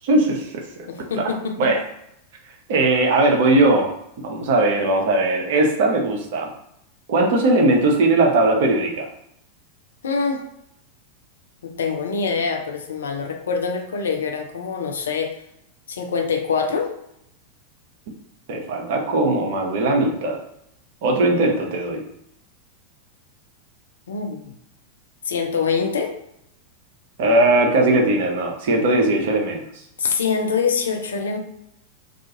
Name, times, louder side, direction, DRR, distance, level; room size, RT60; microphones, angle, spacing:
voice 1, 0.0-0.6 1.1-1.8 2.7-3.9 4.2-6.5 7.1-9.1 18.5-20.4 21.0-22.0 27.2-29.6, right 2 dB, 55° right, 1 dB, 0.6 m, -19 dB
voice 2, 0.9-1.7 10.0-10.4 11.6-15.4 15.9-16.9 24.1-24.4 25.2-26.2 30.0-31.4, left 5 dB, 65° left, 4 dB, 0.4 m, -24 dB
2.4 x 2.3 x 2.7 m, 0.78 s
figure-of-eight pair, 90°, 0 cm